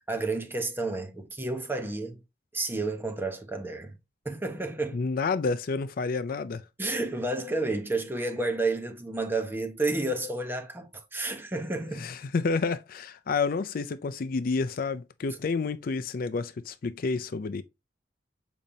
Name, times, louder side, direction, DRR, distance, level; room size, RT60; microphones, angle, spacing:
voice 1, 0.1-2.2 2.5-4.0 4.2-5.0 6.8-12.1, right 2 dB, 15° right, 1.1 m, -31 dB
voice 2, 4.9-6.6 12.0-17.6, left 4 dB, 50° left, 0.4 m, -29 dB
7.0 x 5.1 x 2.8 m
head